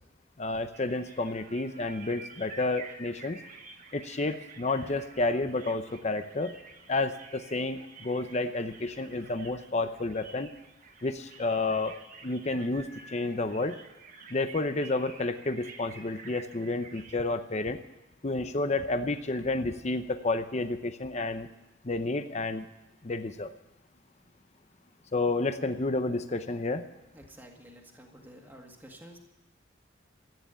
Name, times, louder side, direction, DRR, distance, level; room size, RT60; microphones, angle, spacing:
voice 1, 0.4-3.4 3.9-6.6 6.9-10.5 11.0-12.0 12.2-13.8 14.3-17.8 18.2-21.5 21.8-22.7 23.0-23.5 25.1-26.9, left 2 dB, 35° left, 9 dB, 0.7 m, -30 dB
sound 1, 0.7-17.2, right 5 dB, 40° right, 1.5 m, -50 dB
voice 2, 27.1-29.2, equal, 10° right, 1 dB, 1.9 m, -50 dB
14.0 x 9.9 x 8.9 m, 1.0 s
head